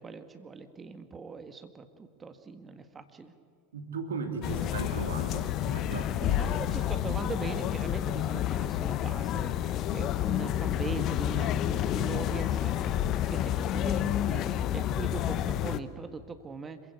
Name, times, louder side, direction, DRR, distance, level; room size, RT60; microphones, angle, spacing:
voice 1, 0.0-3.3 6.4-16.8, right 4 dB, 20° right, 9 dB, 1.8 m, -41 dB
voice 2, 3.7-7.0, right 4 dB, 80° right, 5 dB, 2.7 m, -38 dB
sound 1, 4.4-15.8, left 11 dB, 45° left, 0.8 m, -29 dB
26.0 x 16.0 x 8.4 m, 2.3 s
hypercardioid pair, 90°, 0 cm